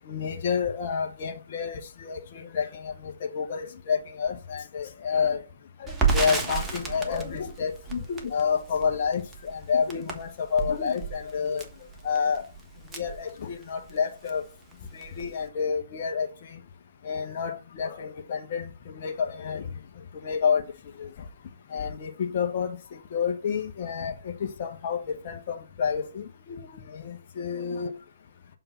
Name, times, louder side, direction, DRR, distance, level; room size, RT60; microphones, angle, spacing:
voice 1, 0.1-5.4 5.8-11.6 12.0-12.4 12.9-14.4 14.9-16.6 17.0-19.7 20.1-20.6 21.0-21.1 21.7-27.9, left 6 dB, 45° left, 1.1 m, -29 dB
Crackle, 5.9-13.9 14.3-14.4 14.7-15.4, right 5 dB, 10° right, 1.3 m, -32 dB
6.9 x 3.8 x 6.0 m
hypercardioid pair, 135°, 0 cm